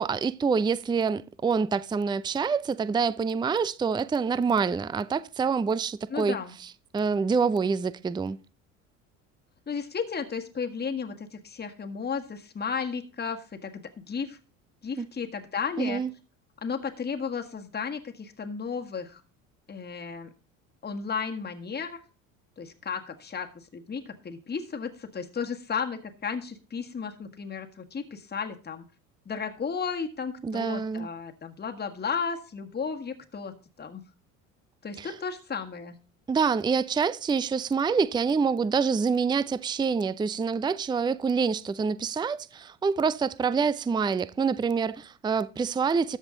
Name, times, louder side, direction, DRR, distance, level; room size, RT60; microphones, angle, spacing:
voice 1, 0.0-6.4 6.9-8.4 15.0-15.1 15.8-16.1 30.4-31.1 35.0-35.1 36.3-46.2, right 5 dB, 10° right, 0.5 m, -26 dB
voice 2, 6.1-6.5 9.7-14.4 14.8-16.0 16.6-19.2 19.7-20.3 20.8-22.0 22.6-28.8 29.2-34.0 34.8-36.0, left 6 dB, 25° left, 1.6 m, -34 dB
13.5 x 8.0 x 3.9 m
hypercardioid pair, 70°, 39 cm